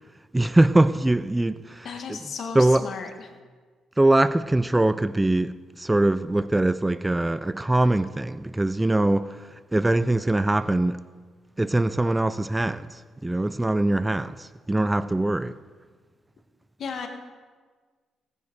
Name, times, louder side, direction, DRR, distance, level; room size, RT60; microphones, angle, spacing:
voice 1, 0.3-2.3 2.5-2.9 4.0-11.0 11.6-15.6, right 2 dB, 10° right, 0.4 m, -22 dB
voice 2, 1.8-3.1 16.8-17.1, left 5 dB, 60° left, 1.9 m, -34 dB
17.5 x 10.0 x 4.8 m
cardioid pair, 90°, 0 cm